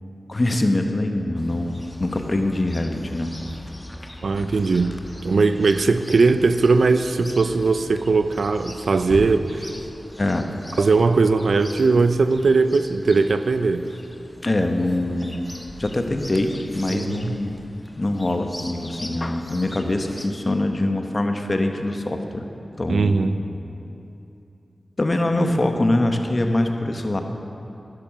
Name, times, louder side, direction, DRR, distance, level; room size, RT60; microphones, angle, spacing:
voice 1, 0.3-3.3 10.2-10.5 14.4-15.4 15.8-17.6 18.0-22.4 22.8-23.2 25.0-27.2, left 1 dB, 40° left, 5 dB, 1.1 m, -23 dB
Chirp tweet, 1.4-20.3, left 1 dB, 20° left, 1.1 m, -40 dB
voice 2, 4.2-9.7 10.8-13.9 16.9-17.4 22.9-23.4, right 4 dB, 80° right, 10 dB, 0.5 m, -19 dB
11.5 x 10.5 x 6.0 m, 2.8 s
cardioid pair, 45°, 0 cm